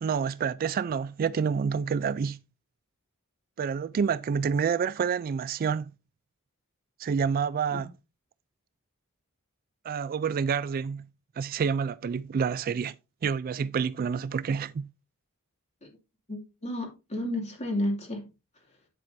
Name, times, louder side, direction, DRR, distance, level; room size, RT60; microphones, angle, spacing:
voice 1, 0.0-2.4 3.6-5.9 7.0-7.9 9.8-11.1 11.4-12.9 13.2-14.9, right 6 dB, 40° right, 0.3 m, -28 dB
voice 2, 16.3-18.2, left 1 dB, 30° left, 2.5 m, -31 dB
8.7 x 7.7 x 2.6 m
head